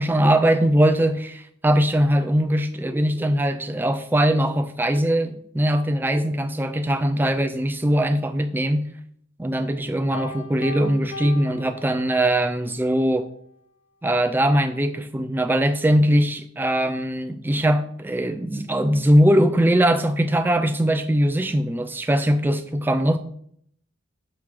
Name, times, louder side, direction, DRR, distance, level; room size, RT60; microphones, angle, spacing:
voice 1, 0.0-8.9 9.4-13.3 14.0-23.2, right 1 dB, 10° right, 0.3 m, -21 dB
Piano, 10.1-12.5, left 1 dB, 60° left, 0.5 m, -37 dB
6.2 x 3.7 x 4.5 m
head